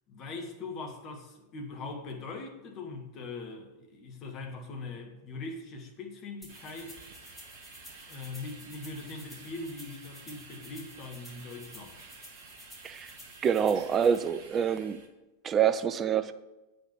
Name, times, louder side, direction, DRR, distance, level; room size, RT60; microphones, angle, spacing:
voice 1, 0.1-7.1 8.1-12.0, left 3 dB, 35° left, 3 dB, 1.7 m, -41 dB
sound 1, 6.4-14.2, left 1 dB, 5° left, 3.1 m, -53 dB
sound 2, 6.5-15.1, right 4 dB, 50° right, 1.5 m, -51 dB
voice 2, 13.4-15.0 15.4-16.3, right 8 dB, 25° right, 12 dB, 0.5 m, -26 dB
8.1 x 5.6 x 7.2 m, 1.0 s
figure-of-eight pair, 90°, 0 cm